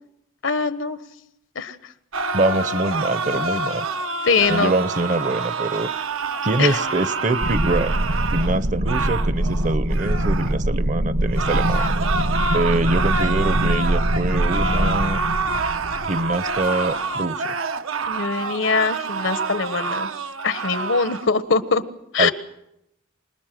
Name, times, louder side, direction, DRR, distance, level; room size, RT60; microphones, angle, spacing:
voice 1, 0.4-1.0 1.5-1.8 4.3-4.7 6.6-6.8 18.0-20.1 20.4-21.8 22.1-22.3, left 4 dB, 70° left, 12 dB, 1.3 m, -22 dB
sound 1, 2.1-10.6 11.3-21.3, right 4 dB, 85° right, 1.1 m, -27 dB
voice 2, 2.3-3.8 4.5-5.9 6.4-7.9 8.3-11.9 12.5-15.2 16.0-17.5 22.2-22.3, right 2 dB, 35° right, 15 dB, 0.8 m, -24 dB
sound 2, 7.4-16.7, right 1 dB, 60° right, 1.2 m, -23 dB
25.5 x 20.0 x 7.7 m, 0.81 s
head